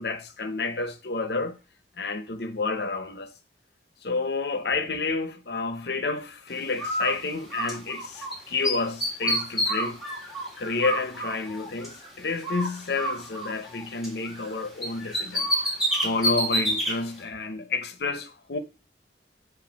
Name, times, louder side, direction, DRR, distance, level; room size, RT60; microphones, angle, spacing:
voice 1, 0.0-1.6 2.0-3.3 4.0-10.0 10.6-15.8 16.0-18.6, left 3 dB, 65° left, 0.8 m, -30 dB
Bird, 6.8-8.3 8.6-12.1 12.4-14.5 14.8-16.9, right 1 dB, ahead, 2.0 m, -29 dB
7.3 x 2.7 x 5.8 m
head